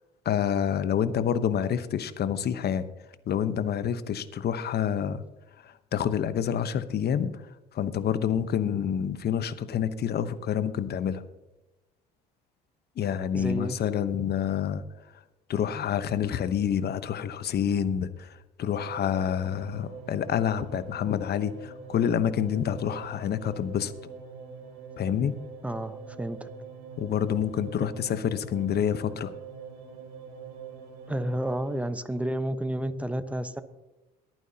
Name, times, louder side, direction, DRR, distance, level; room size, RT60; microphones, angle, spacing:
voice 1, 0.2-2.9 3.3-5.2 5.6-7.3 7.7-11.2 13.0-14.8 15.5-23.9 25.0-25.3 27.0-29.3, left 8 dB, 50° left, 12 dB, 1.0 m, -28 dB
voice 2, 13.3-13.8 25.6-26.5 31.1-33.6, right 1 dB, 5° right, 11 dB, 1.1 m, -31 dB
sound 1, 18.7-31.8, right 5 dB, 80° right, 2.4 m, -44 dB
22.5 x 9.2 x 2.9 m, 1.1 s
hypercardioid pair, 65°, 21 cm